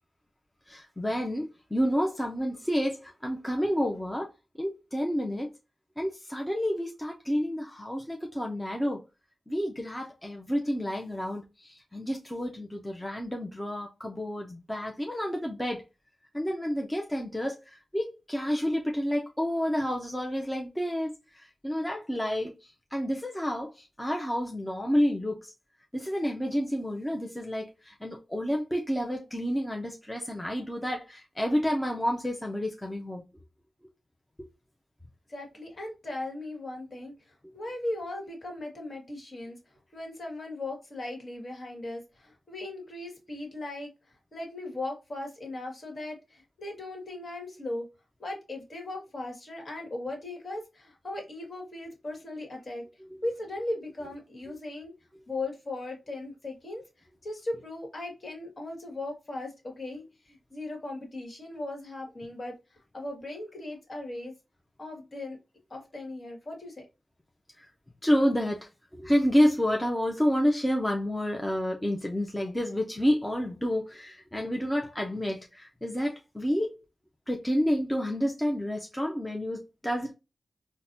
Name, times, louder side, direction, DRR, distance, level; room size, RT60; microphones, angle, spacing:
voice 1, 0.7-5.5 6.0-9.0 9.5-15.8 16.3-25.5 25.9-33.2 67.6-67.7 68.0-76.7 77.3-80.1, equal, 10° left, 0.6 m, -29 dB
voice 2, 35.3-37.1 37.5-39.6 39.9-43.9 44.3-47.9 48.2-52.8 53.2-54.9 55.3-56.8 57.2-64.3 64.8-65.4 65.7-66.9, left 2 dB, 50° left, 1.5 m, -38 dB
3.9 x 2.1 x 2.6 m
cardioid pair, 70°, 0 cm